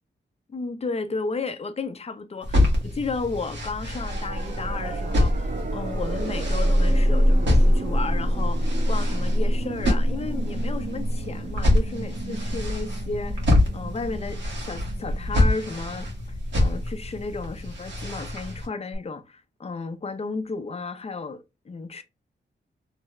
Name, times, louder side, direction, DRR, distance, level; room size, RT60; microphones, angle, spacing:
voice 1, 0.5-16.1 16.6-22.0, left 4 dB, 35° left, 0.5 m, -33 dB
sound 1, 2.4-18.7, left 1 dB, 75° right, 1.4 m, -27 dB
sound 2, 3.7-16.6 18.9-19.0, equal, 50° right, 0.8 m, -26 dB
3.2 x 2.3 x 2.9 m
wide cardioid pair, 90°, 19 cm